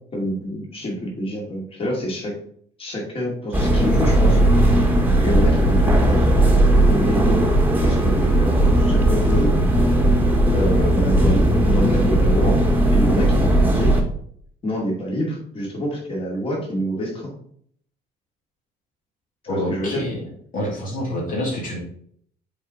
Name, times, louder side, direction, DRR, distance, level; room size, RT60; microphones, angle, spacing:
voice 1, 0.1-2.3 2.8-4.4 5.2-6.3 6.9-7.5 7.8-9.5 10.5-11.5 11.7-12.6 12.9-14.0 14.6-17.3 19.4-20.0, equal, 35° left, -1 dB, 2.3 m, -26 dB
sound 1, 3.5-14.0, right 1 dB, 10° right, 1.3 m, -17 dB
voice 2, 19.5-20.2 20.5-21.8, left 1 dB, 55° left, -3 dB, 2.0 m, -27 dB
7.1 x 4.3 x 3.7 m, 0.63 s
cardioid pair, 110°, 17 cm